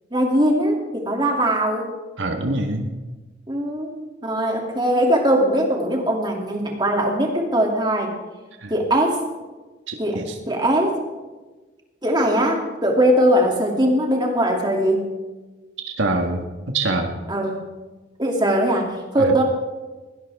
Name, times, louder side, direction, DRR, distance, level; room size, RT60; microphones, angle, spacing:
voice 1, 0.1-1.9 3.5-8.1 8.7-9.2 10.0-11.0 12.0-15.1 17.3-17.7 18.2-19.4, right 1 dB, 25° right, 0 dB, 2.7 m, -20 dB
voice 2, 2.2-2.9 8.6-8.7 9.9-10.3 15.8-16.5 16.7-17.1 19.2-19.3, right 2 dB, 85° right, 3 dB, 1.6 m, -25 dB
20.0 x 17.5 x 3.6 m, 1.2 s
head